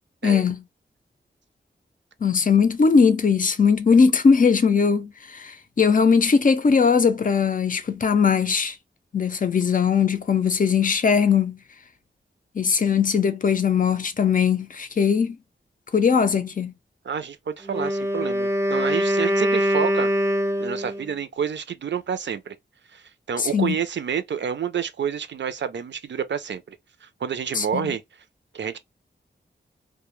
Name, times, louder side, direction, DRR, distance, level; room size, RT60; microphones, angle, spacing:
voice 1, 0.2-0.6 2.2-8.8 9.1-11.6 12.6-15.4 15.9-16.7 23.4-23.8 27.5-27.9, left 6 dB, 45° left, 0.5 m, -20 dB
voice 2, 17.0-20.1 20.6-22.6 22.9-28.0 28.5-28.8, right 7 dB, 70° right, 0.5 m, -29 dB
Wind instrument woodwind instrument, 17.6-21.1, equal, 15° right, 0.4 m, -23 dB
2.2 x 2.1 x 2.9 m
wide cardioid pair, 85°, 19 cm